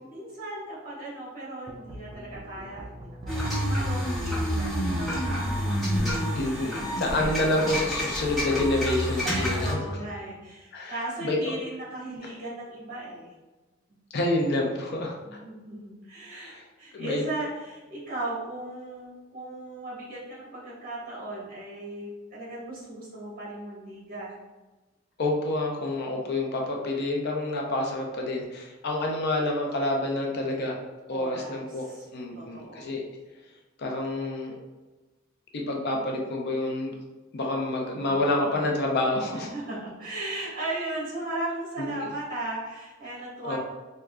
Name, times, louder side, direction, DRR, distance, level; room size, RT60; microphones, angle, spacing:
voice 1, 0.1-5.4 5.7-7.0 9.2-13.3 15.2-24.3 31.1-32.1 32.3-32.9 37.9-38.6 39.5-43.6, right 2 dB, 45° right, -7 dB, 1.3 m, -37 dB
sound 1, 1.7-8.7, equal, 20° right, 0.3 m, -43 dB
sound 2, 3.3-9.7, equal, ahead, 1.3 m, -28 dB
voice 2, 6.3-9.8 10.7-10.9 11.2-11.4 14.1-15.1 16.3-16.6 16.9-17.2 25.2-30.7 31.1-31.9 32.1-33.0 33.8-34.6 35.5-36.9 37.3-39.5 41.8-42.1 43.4-43.6, left 2 dB, 55° left, 0 dB, 0.5 m, -28 dB
4.7 x 2.1 x 2.2 m, 1.2 s
head